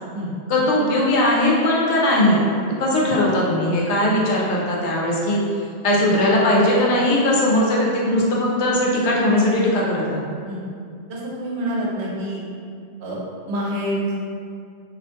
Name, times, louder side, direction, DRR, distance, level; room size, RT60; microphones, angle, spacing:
voice 1, 0.5-2.5 2.8-5.4 5.8-10.3, left 1 dB, 75° left, -4 dB, 0.8 m, -19 dB
voice 2, 11.1-12.4 13.0-13.2 13.5-14.2, right 1 dB, 75° right, -4 dB, 0.8 m, -27 dB
2.4 x 2.2 x 2.6 m, 2.3 s
omnidirectional pair, 1.2 m